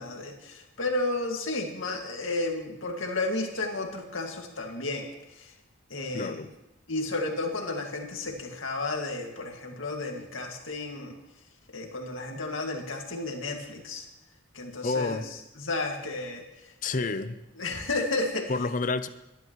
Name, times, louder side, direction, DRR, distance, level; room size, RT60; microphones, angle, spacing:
voice 1, 0.0-5.5 5.9-6.4 6.9-11.1 11.7-14.1 14.5-15.2 15.6-16.7 17.0-17.1 17.6-18.5, left 2 dB, 75° left, 2 dB, 2.1 m, -32 dB
voice 2, 6.1-6.5 14.8-15.3 16.8-17.4 18.5-19.1, left 3 dB, 40° left, 12 dB, 0.6 m, -29 dB
22.0 x 11.5 x 3.1 m, 0.92 s
head